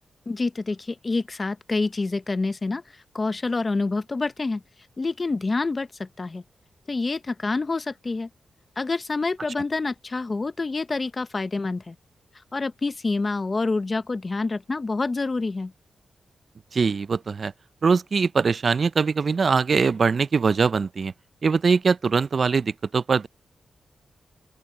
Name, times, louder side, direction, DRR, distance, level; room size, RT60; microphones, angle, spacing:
voice 1, 0.3-2.8 3.1-4.6 5.0-6.4 6.9-8.3 8.8-11.9 12.5-15.7, left 3 dB, 30° left, 0.7 m, -27 dB
voice 2, 16.7-17.5 17.8-21.1 21.4-23.3, right 5 dB, 50° right, 0.4 m, -22 dB
open air
cardioid pair, 95°, 0 cm